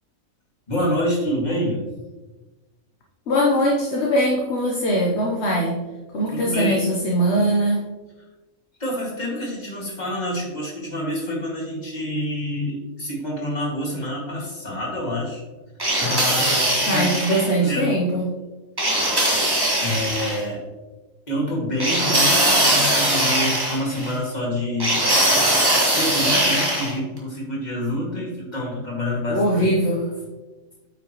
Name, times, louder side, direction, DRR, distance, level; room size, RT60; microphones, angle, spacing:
voice 1, 0.7-1.8 6.3-6.9 8.8-15.4 16.0-17.9 19.8-20.6 21.3-25.0 25.9-29.7, left 1 dB, 30° left, -4 dB, 2.3 m, -27 dB
voice 2, 3.3-5.7 6.1-7.8 16.9-18.2 29.3-30.0, equal, 55° left, -1 dB, 1.2 m, -21 dB
sound 1, 15.8-17.5 18.8-20.4 21.8-24.1 24.8-26.9, right 1 dB, 15° right, 1.6 m, -20 dB
8.6 x 5.8 x 3.0 m, 1.2 s
omnidirectional pair, 1.4 m